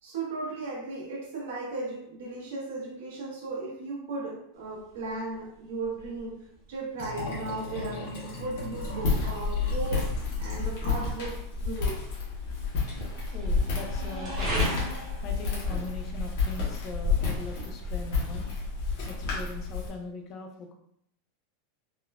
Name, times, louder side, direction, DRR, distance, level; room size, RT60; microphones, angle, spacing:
voice 1, 0.0-6.4 6.7-10.1 10.4-12.0, right 3 dB, 80° right, -3 dB, 1.1 m, -36 dB
sound 1, 4.5-20.1, right 1 dB, 30° right, 0.9 m, -41 dB
Liquid, 6.9-11.2 11.5-11.6, left 1 dB, 65° left, 1.3 m, -38 dB
Walk footsteps, 8.7-19.9, left 4 dB, 50° left, 0.9 m, -30 dB
voice 2, 13.3-18.5 19.1-20.7, left 3 dB, 25° left, 3 dB, 0.3 m, -41 dB
3.5 x 2.3 x 2.3 m, 0.72 s
supercardioid pair, 180°, 0 cm